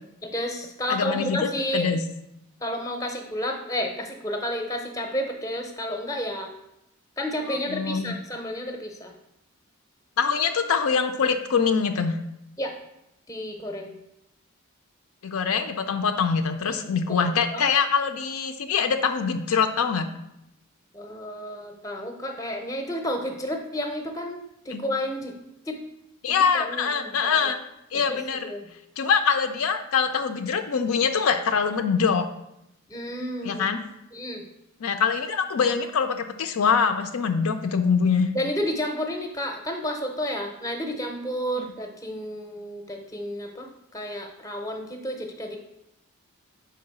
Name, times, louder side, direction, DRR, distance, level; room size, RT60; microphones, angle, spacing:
voice 1, 0.2-1.9 2.6-6.5 7.2-9.1 12.6-12.7 13.3-14.0 16.6-17.7 20.9-25.3 25.7-25.8 26.5-27.5 28.1-28.2 28.4-28.6 32.9-33.7 34.1-34.4 38.3-45.6, equal, 15° left, 3 dB, 0.6 m, -31 dB
voice 2, 0.9-1.4 1.7-2.0 7.5-8.1 10.2-12.2 15.2-20.1 24.7-24.8 26.2-27.6 27.9-28.5 29.0-32.3 33.4-33.8 34.8-38.3 41.6-41.7, left 6 dB, 70° left, 7 dB, 0.4 m, -24 dB
5.1 x 3.8 x 5.4 m, 0.84 s
head